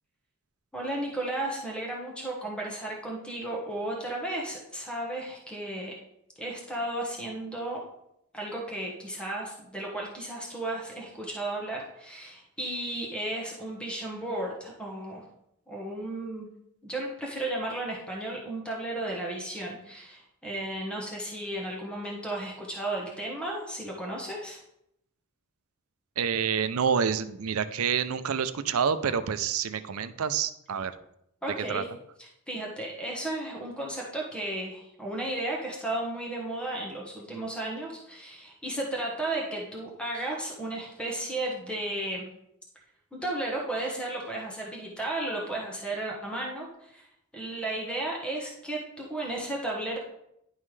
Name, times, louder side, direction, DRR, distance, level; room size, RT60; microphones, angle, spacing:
voice 1, 0.7-6.0 6.4-7.9 8.3-15.3 15.7-16.5 16.8-24.6 31.4-31.9 32.2-42.3 43.1-47.1 47.3-50.0, right 1 dB, 5° left, -2 dB, 1.2 m, -34 dB
voice 2, 26.2-30.9 31.7-31.8, right 7 dB, 90° right, 12 dB, 0.5 m, -28 dB
10.5 x 5.5 x 3.2 m, 0.79 s
head